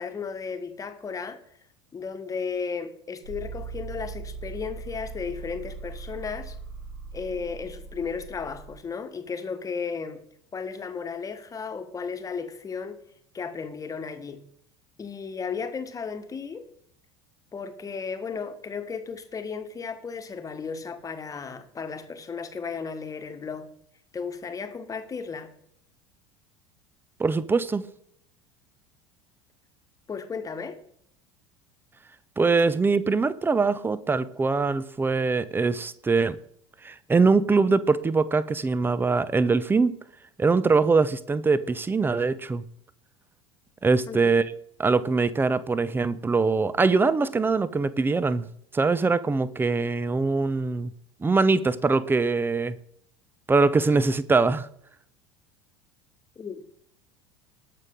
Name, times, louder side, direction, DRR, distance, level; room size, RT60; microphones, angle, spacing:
voice 1, 0.0-1.4 1.9-6.5 7.1-10.2 10.5-13.0 13.3-14.4 15.0-16.7 17.5-23.7 24.1-25.5 30.1-30.8 44.1-44.3 56.4-56.6, left 5 dB, 20° left, 1.4 m, -34 dB
sound 1, 3.2-8.7, right 4 dB, 75° right, 4.6 m, -39 dB
voice 2, 27.2-27.8 32.4-36.4 36.8-39.9 40.4-42.6 43.8-44.4 44.8-48.5 48.7-50.9 51.2-52.8 53.5-54.7, right 4 dB, 15° right, 0.7 m, -23 dB
19.5 x 6.6 x 3.8 m
figure-of-eight pair, 75°, 15 cm